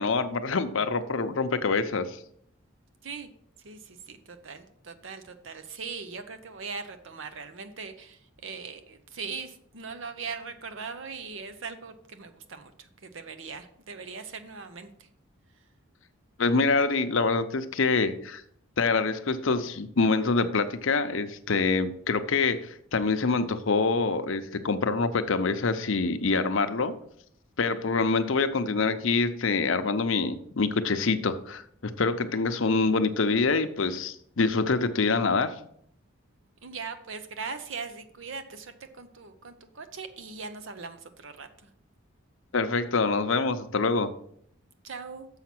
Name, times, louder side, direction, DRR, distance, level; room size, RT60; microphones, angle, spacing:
voice 1, 0.0-2.2 16.4-18.4 18.8-26.9 27.6-35.5 42.5-44.1, left 4 dB, 65° left, 9 dB, 0.7 m, -25 dB
voice 2, 3.6-15.1 36.6-41.7 44.8-45.3, right 5 dB, 65° right, 9 dB, 0.7 m, -40 dB
7.1 x 5.7 x 6.0 m, 0.67 s
head